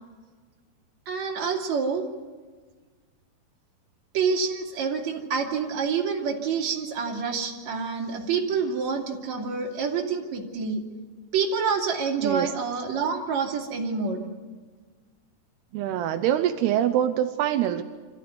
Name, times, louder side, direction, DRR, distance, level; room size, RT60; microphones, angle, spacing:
voice 1, 1.1-2.1 4.1-10.8 11.3-14.2, right 5 dB, 45° right, 0 dB, 3.9 m, -27 dB
voice 2, 15.7-17.8, right 11 dB, 85° right, 8 dB, 2.9 m, -24 dB
26.0 x 15.0 x 9.6 m, 1.4 s
omnidirectional pair, 4.6 m